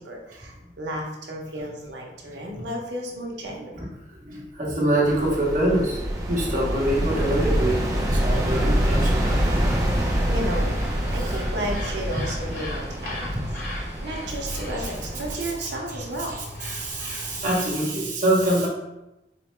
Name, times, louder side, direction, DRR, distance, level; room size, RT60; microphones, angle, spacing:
voice 1, 0.0-3.8 10.0-10.7 11.1-13.3 14.0-16.4, right 1 dB, 80° right, 0 dB, 0.7 m, -33 dB
voice 2, 3.7-9.4 11.1-11.4 13.3-13.4 14.5-14.9 15.3-16.0 16.3-18.7, right 1 dB, 50° right, -4 dB, 1.0 m, -26 dB
sound 1, 5.1-15.3, equal, 20° right, 0.5 m, -26 dB
sound 2, 6.9-17.8, left 1 dB, 55° left, 0.8 m, -37 dB
4.0 x 2.1 x 3.2 m, 0.93 s
head